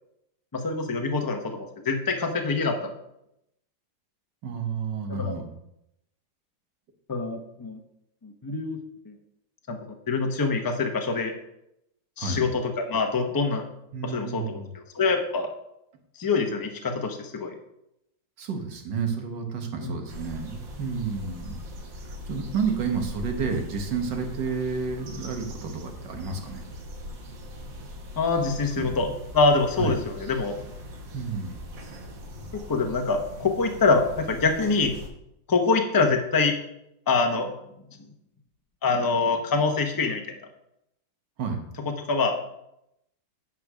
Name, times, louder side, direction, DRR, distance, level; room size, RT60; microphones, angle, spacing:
voice 1, 0.5-2.9 5.1-5.3 7.1-7.8 8.2-8.8 9.1-9.2 9.7-9.8 10.1-11.3 12.2-13.6 14.0-15.5 16.2-17.5 19.8-19.9 28.2-30.6 32.5-34.9 35.5-36.5 37.1-37.5 38.8-40.4 41.9-42.4, left 4 dB, 25° left, 4 dB, 0.5 m, -25 dB
voice 2, 4.4-5.4 12.2-12.5 13.9-14.7 18.4-21.6 22.3-26.6 28.7-28.9 29.8-30.0 31.1-31.6 36.0-36.1 41.4-41.6, right 5 dB, 70° right, 4 dB, 1.9 m, -30 dB
sound 1, 20.1-35.1, left 1 dB, 90° right, 2.1 m, -41 dB
9.2 x 4.7 x 6.2 m, 0.81 s
omnidirectional pair, 2.0 m